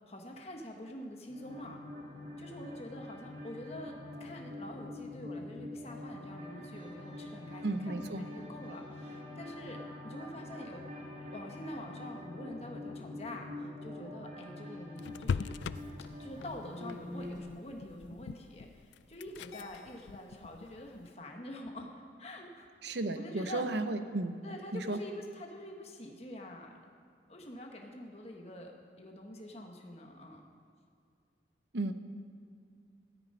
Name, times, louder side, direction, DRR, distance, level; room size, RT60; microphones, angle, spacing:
voice 1, 0.1-1.8 2.4-10.8 11.3-15.5 16.2-21.9 22.2-23.6 24.4-26.7 27.3-28.7 29.0-30.4, left 1 dB, 35° left, 1 dB, 1.3 m, -46 dB
sound 1, 1.3-17.4, left 1 dB, 45° right, 3.0 m, -45 dB
voice 2, 7.6-8.2 22.8-24.3 24.7-25.0 31.7-31.9, right 2 dB, 75° right, 9 dB, 0.8 m, -34 dB
sound 2, 15.0-21.1, left 5 dB, 80° left, 0.3 m, -41 dB
14.0 x 12.5 x 5.5 m, 2.2 s
head